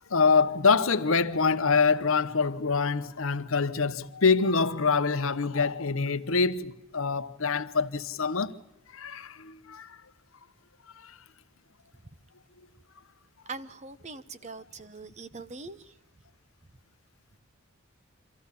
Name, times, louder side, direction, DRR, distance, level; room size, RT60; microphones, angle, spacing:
voice 1, 0.1-8.5 8.9-10.0 11.0-11.2, left 4 dB, 65° left, 0.9 m, -25 dB
voice 2, 13.5-16.0, right 3 dB, 30° right, 0.7 m, -42 dB
24.5 x 15.0 x 8.2 m
head